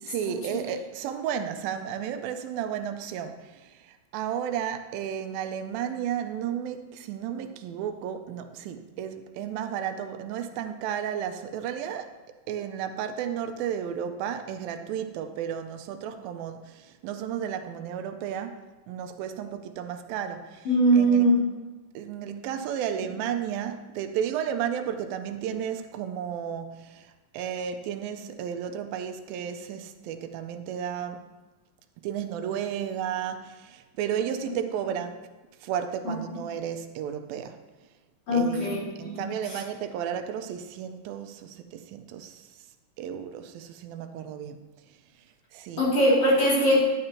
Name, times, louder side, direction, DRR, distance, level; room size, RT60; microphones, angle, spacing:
voice 1, 0.0-12.2 12.5-20.7 20.9-21.3 21.9-31.3 32.0-35.2 35.6-37.6 38.3-42.5 43.0-44.6 45.5-45.8, right 9 dB, 90° right, 8 dB, 2.5 m, -33 dB
voice 2, 20.7-21.4 34.5-34.6 36.0-36.2 38.3-39.2 39.5-39.6 45.8-46.9, right 1 dB, 45° left, -7 dB, 3.7 m, -21 dB
11.0 x 9.6 x 2.9 m, 1.2 s
omnidirectional pair, 4.0 m